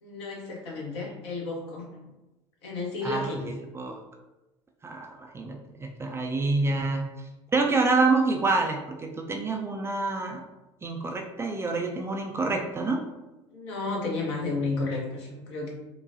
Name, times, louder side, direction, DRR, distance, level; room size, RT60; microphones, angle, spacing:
voice 1, 0.0-2.0 2.6-3.5 13.5-15.7, left 3 dB, 60° left, -2 dB, 1.0 m, -32 dB
voice 2, 3.0-4.0 4.8-7.1 7.5-10.4 10.8-13.0, right 3 dB, 15° right, 1 dB, 0.4 m, -27 dB
4.9 x 2.3 x 2.5 m, 1.0 s
figure-of-eight pair, 70°, 15 cm